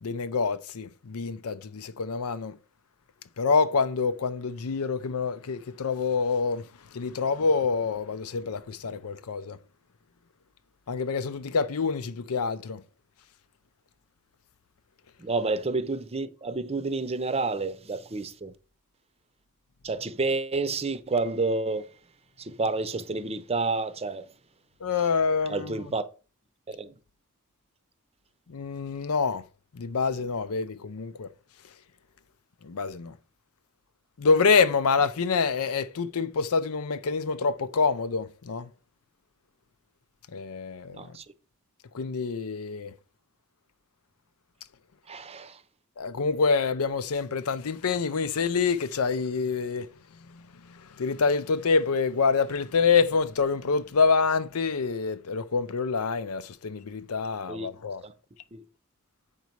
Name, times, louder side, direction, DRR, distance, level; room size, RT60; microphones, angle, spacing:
voice 1, 0.0-2.6 3.4-9.6 10.9-12.8 24.8-25.8 28.5-29.4 29.7-31.3 32.6-33.2 34.2-38.7 40.3-41.2 41.9-42.9 46.0-49.9 50.3-58.0, left 5 dB, 75° left, 0.6 m, -26 dB
voice 2, 15.2-18.5 19.8-21.9 22.4-24.3 25.5-26.0 26.7-26.9 40.9-41.2 45.1-45.6 57.5-57.7 58.0-58.1 58.5-58.6, right 3 dB, 30° right, 0.7 m, -29 dB
8.2 x 5.4 x 4.6 m
head